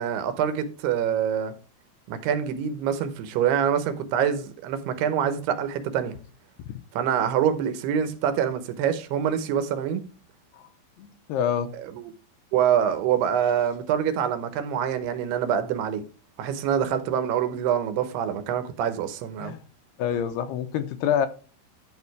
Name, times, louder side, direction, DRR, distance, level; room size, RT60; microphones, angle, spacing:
voice 1, 0.0-1.5 2.1-6.2 6.9-10.0 11.8-12.1 12.5-16.0 16.4-19.6, right 8 dB, 75° right, 2.9 m, -25 dB
voice 2, 11.0-11.7 19.4-19.6 20.0-21.3, left 9 dB, 80° left, 2.6 m, -26 dB
11.0 x 4.9 x 4.7 m
omnidirectional pair, 4.8 m